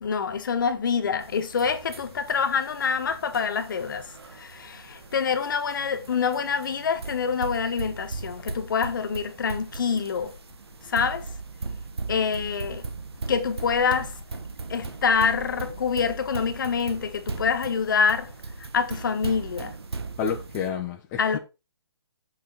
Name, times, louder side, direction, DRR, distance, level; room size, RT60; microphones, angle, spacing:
voice 1, 0.0-10.3 10.8-11.3 12.1-12.8 13.3-14.1 14.7-18.3 18.6-19.7 21.2-21.4, left 6 dB, 50° left, 1.3 m, -26 dB
sound 1, 1.2-20.7, right 3 dB, 70° right, 1.5 m, -38 dB
voice 2, 20.2-21.4, left 7 dB, 15° left, 0.7 m, -30 dB
7.3 x 5.9 x 4.0 m
hypercardioid pair, 160°, 14 cm